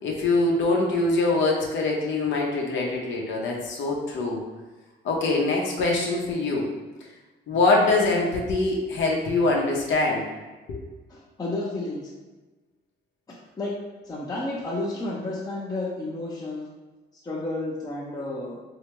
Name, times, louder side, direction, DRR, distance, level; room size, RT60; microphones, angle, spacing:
voice 1, 0.0-4.4 5.0-6.7 7.5-10.2 10.7-10.8, left 2 dB, 70° left, -2 dB, 0.8 m, -23 dB
voice 2, 11.1-12.1 13.3-13.7 14.1-16.7 17.2-18.6, left 2 dB, 20° left, -5 dB, 0.6 m, -31 dB
3.3 x 2.8 x 3.0 m, 1.2 s
cardioid pair, 90°, 20 cm